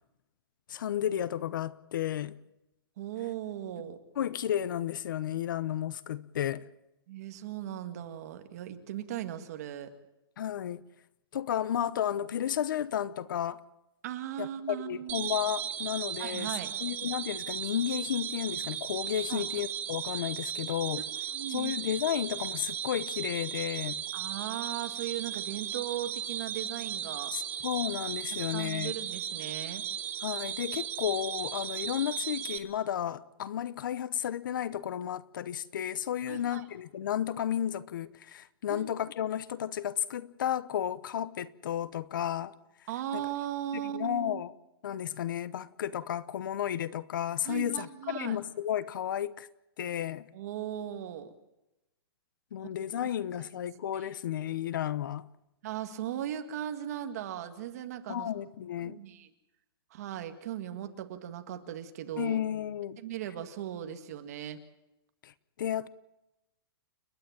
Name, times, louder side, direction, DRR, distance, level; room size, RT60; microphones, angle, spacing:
voice 1, 0.7-2.4 4.2-6.7 10.4-10.8 11.3-13.6 14.4-16.5 16.8-21.0 21.5-24.0 27.3-28.9 30.2-42.5 43.1-43.3 43.7-44.5 44.8-49.5 49.8-50.3 52.5-55.3 58.1-59.0 62.2-63.0 65.2-65.3 65.6-65.9, left 10 dB, 55° left, 0.9 m, -33 dB
voice 2, 3.0-4.0 7.1-9.9 14.0-15.3 16.2-16.7 19.3-19.5 21.0-21.1 21.3-21.8 24.1-27.3 28.5-29.8 36.3-36.7 38.7-38.9 42.9-44.4 47.4-48.4 50.3-51.3 53.0-53.1 53.4-53.5 53.9-54.1 55.6-58.3 58.8-59.3 59.9-62.4 63.0-64.6, right 11 dB, 40° right, 2.0 m, -38 dB
sound 1, 15.1-32.6, right 10 dB, 15° right, 0.8 m, -36 dB
30.0 x 10.0 x 9.4 m
hypercardioid pair, 175°, 13 cm